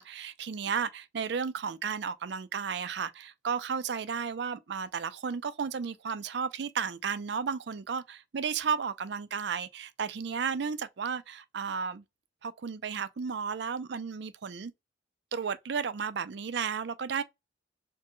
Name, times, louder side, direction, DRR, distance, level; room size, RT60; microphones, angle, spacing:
voice 1, 0.0-12.0 12.4-14.7 15.3-17.2, right 6 dB, 60° right, 0.4 m, -33 dB
4.4 x 2.1 x 3.0 m
head